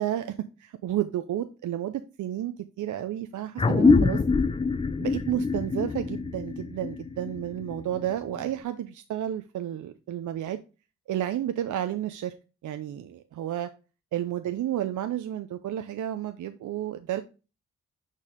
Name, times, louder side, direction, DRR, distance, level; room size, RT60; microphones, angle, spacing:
voice 1, 0.0-4.2 5.0-10.6 11.1-12.3 12.6-13.7 14.1-17.2, right 11 dB, 70° right, 9 dB, 0.5 m, -31 dB
sound 1, 3.6-8.5, left 4 dB, 15° left, 0.4 m, -25 dB
6.3 x 4.1 x 3.7 m, 0.32 s
supercardioid pair, 50°, 32 cm